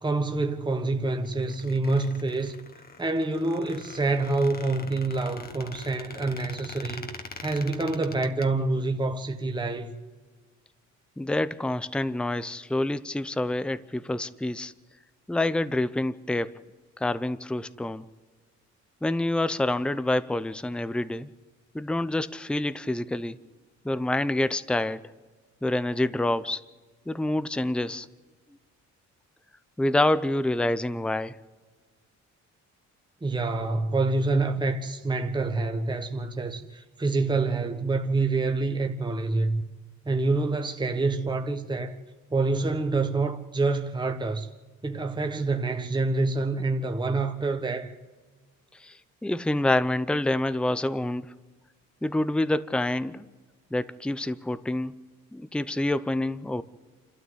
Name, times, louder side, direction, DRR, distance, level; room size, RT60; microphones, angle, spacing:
voice 1, 0.0-2.6 3.0-7.1 7.4-9.9 33.2-39.6 40.0-42.0 42.3-44.5 44.8-47.9, right 3 dB, 15° right, 1.3 m, -27 dB
Squeak, 1.2-8.5, left 4 dB, 30° left, 1.4 m, -44 dB
voice 2, 11.2-14.7 15.3-16.5 17.0-18.1 19.0-21.3 21.7-23.4 23.8-25.1 25.6-26.6 27.1-28.1 29.8-31.4 48.8-49.0 49.2-51.3 52.0-53.3 53.7-54.9 55.3-56.6, left 1 dB, 5° left, 0.7 m, -27 dB
27.0 x 13.0 x 8.0 m
cardioid pair, 90°, 30 cm